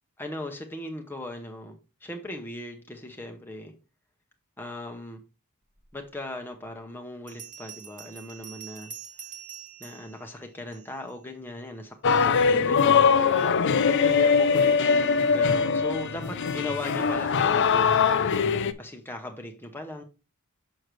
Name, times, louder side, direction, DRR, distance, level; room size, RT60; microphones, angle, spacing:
voice 1, 0.2-3.7 4.6-5.2 5.9-8.9 9.8-13.6 13.8-18.1 18.8-20.0, left 1 dB, 10° left, 0.8 m, -38 dB
Bell, 7.3-11.2, right 7 dB, 35° right, 1.4 m, -45 dB
sound 1, 12.0-18.7, left 6 dB, 55° left, 0.5 m, -22 dB
6.4 x 6.3 x 3.1 m
head